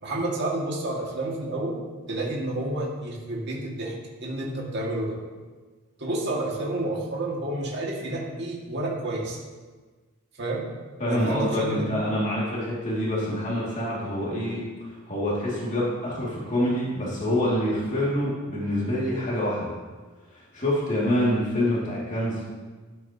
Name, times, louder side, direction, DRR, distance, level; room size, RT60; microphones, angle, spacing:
voice 1, 0.0-1.8 2.1-3.9 4.2-5.2 6.0-9.4 10.4-10.6 11.1-11.8, right 1 dB, 55° right, -3 dB, 2.1 m, -30 dB
voice 2, 11.0-14.6 15.1-19.7 20.3-22.4, equal, 35° left, -6 dB, 2.5 m, -26 dB
12.0 x 10.5 x 3.0 m, 1.4 s
head